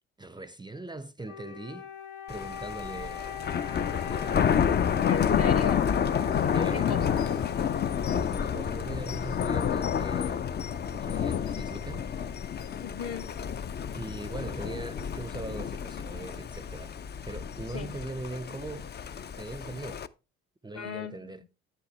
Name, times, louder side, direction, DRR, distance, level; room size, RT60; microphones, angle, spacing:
voice 1, 0.2-1.9 2.3-4.4 6.5-6.9 7.9-10.4 10.9-12.0 13.9-17.0 17.2-18.9 19.4-20.1 20.6-21.4, right 2 dB, 15° right, 0.6 m, -41 dB
Wind instrument woodwind instrument, 1.2-8.8, left 8 dB, 70° left, 0.8 m, -42 dB
Thunder, 2.3-20.1, left 8 dB, 30° left, 0.5 m, -29 dB
voice 2, 5.1-5.9 6.4-7.2 12.8-13.3 17.7-17.9 20.7-21.3, left 6 dB, 45° left, 0.9 m, -37 dB
9.0 x 7.0 x 3.2 m
hypercardioid pair, 50°, 32 cm